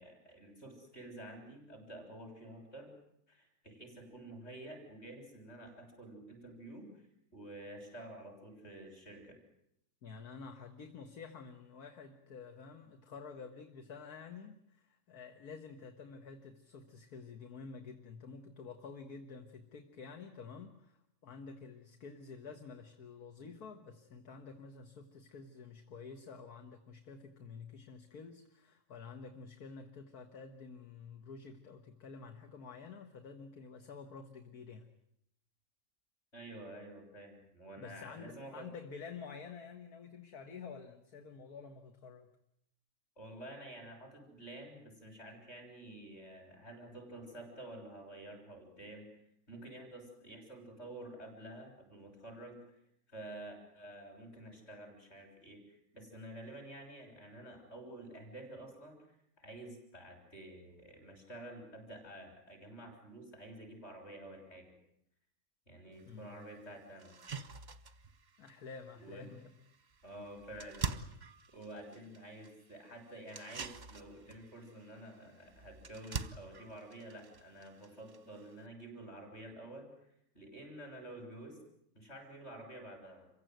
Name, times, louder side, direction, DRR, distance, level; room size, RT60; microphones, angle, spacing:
voice 1, 0.0-2.9 3.3-7.0 7.3-9.4 36.3-38.7 43.2-52.8 53.1-64.8 65.7-67.2 69.0-69.3 70.0-70.9 71.5-81.6 81.9-83.3, right 1 dB, 40° left, 3 dB, 6.8 m, -50 dB
voice 2, 10.0-34.9 37.8-42.3 66.1-66.5 68.4-69.5, left 5 dB, 60° left, 6 dB, 2.0 m, -50 dB
sound 1, 66.0-66.1 66.5-66.6 67.0-78.7, right 6 dB, 30° right, 0.9 m, -46 dB
27.0 x 16.0 x 9.4 m, 0.76 s
omnidirectional pair, 1.8 m